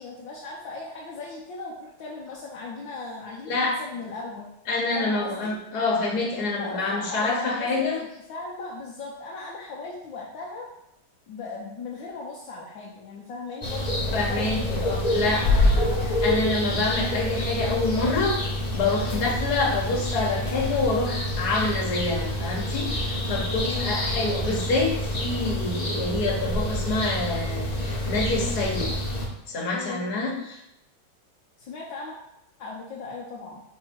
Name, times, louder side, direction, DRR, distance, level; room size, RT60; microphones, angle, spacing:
voice 1, 0.0-4.5 4.9-5.6 6.6-10.7 11.3-16.2 19.1-19.4 23.6-24.4 29.7-30.0 31.6-32.2 32.6-33.6, left 3 dB, 70° left, -4 dB, 1.6 m, -38 dB
voice 2, 4.7-8.0 14.1-15.4 16.2-18.4 18.7-28.9 29.5-30.6, left 3 dB, 55° left, -2 dB, 1.8 m, -27 dB
sound 1, 13.6-29.3, left 1 dB, 35° left, 0.6 m, -27 dB
4.7 x 4.7 x 4.5 m, 0.83 s
omnidirectional pair, 2.1 m